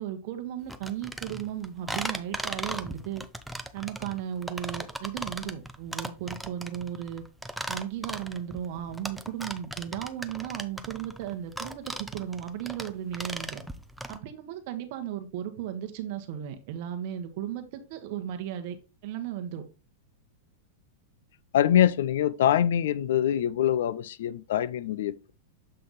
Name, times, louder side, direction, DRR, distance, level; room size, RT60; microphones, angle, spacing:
voice 1, 0.0-3.2 3.7-7.2 7.7-13.6 14.1-18.8 19.0-19.6, right 10 dB, 55° right, 1.1 m, -35 dB
sound 1, 0.7-14.2, right 1 dB, 5° right, 0.5 m, -37 dB
voice 2, 21.5-25.3, left 10 dB, 75° left, 0.4 m, -24 dB
7.6 x 3.3 x 4.1 m
hypercardioid pair, 120°, 0 cm